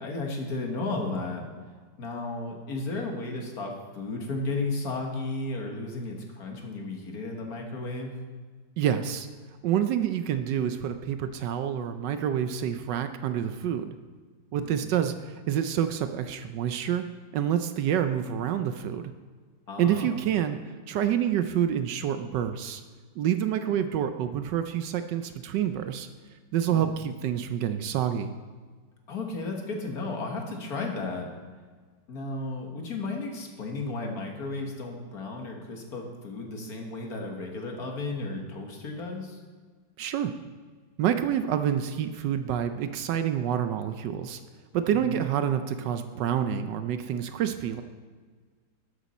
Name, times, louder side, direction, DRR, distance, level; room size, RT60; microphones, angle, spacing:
voice 1, 0.0-1.5 2.0-8.1 14.6-14.8 19.7-20.2 26.6-26.8 29.1-31.3 32.1-39.4 44.9-45.2, left 3 dB, 55° left, 1 dB, 1.8 m, -34 dB
voice 2, 8.8-9.3 9.6-14.0 14.5-17.0 17.3-19.0 19.8-20.6 20.9-22.8 23.2-26.1 26.5-28.3 40.0-40.3 41.0-44.4 44.7-47.8, right 9 dB, 75° right, 9 dB, 1.2 m, -27 dB
13.0 x 8.2 x 4.2 m, 1.5 s
omnidirectional pair, 2.0 m